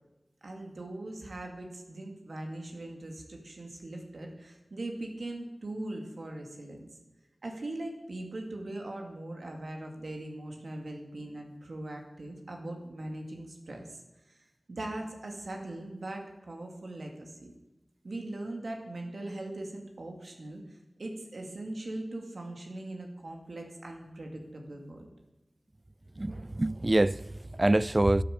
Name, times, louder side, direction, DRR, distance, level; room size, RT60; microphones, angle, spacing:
voice 1, 0.4-6.9 7.4-14.0 14.3-14.4 14.7-17.5 18.0-25.1, right 1 dB, 85° right, 2.3 m, -40 dB
voice 2, 26.2-28.2, right 1 dB, 40° right, 0.4 m, -26 dB
12.5 x 8.8 x 8.3 m
wide cardioid pair, 40°, 0 cm